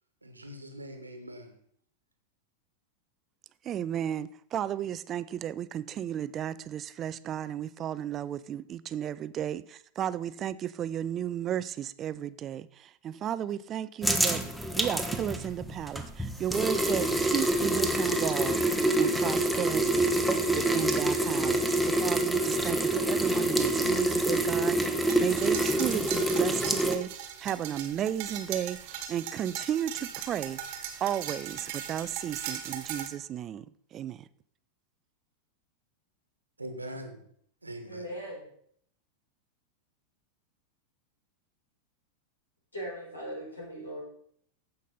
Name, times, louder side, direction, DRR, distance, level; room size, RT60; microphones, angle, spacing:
voice 1, 0.2-1.6 36.6-37.2 37.6-38.1, right 1 dB, 85° right, 1.4 m, -42 dB
voice 2, 3.6-14.4 14.8-20.1 20.5-27.1 27.4-33.7 33.9-34.3, right 10 dB, 30° right, 0.3 m, -34 dB
sound 1, 14.0-27.0, right 1 dB, ahead, 1.0 m, -27 dB
sound 2, 25.1-33.1, right 9 dB, 45° right, 1.3 m, -39 dB
voice 3, 37.8-38.5 42.7-44.0, equal, 75° left, 4.6 m, -39 dB
14.5 x 5.3 x 4.0 m
figure-of-eight pair, 90°, 0 cm